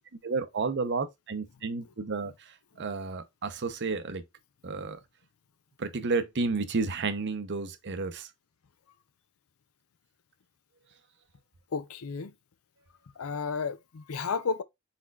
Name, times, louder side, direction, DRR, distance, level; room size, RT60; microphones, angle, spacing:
voice 1, 0.2-4.2 4.6-5.0 5.8-8.3, right 4 dB, 55° right, 0.7 m, -31 dB
voice 2, 11.7-12.3 13.2-14.6, left 5 dB, 80° left, 0.5 m, -32 dB
4.4 x 4.2 x 2.4 m
head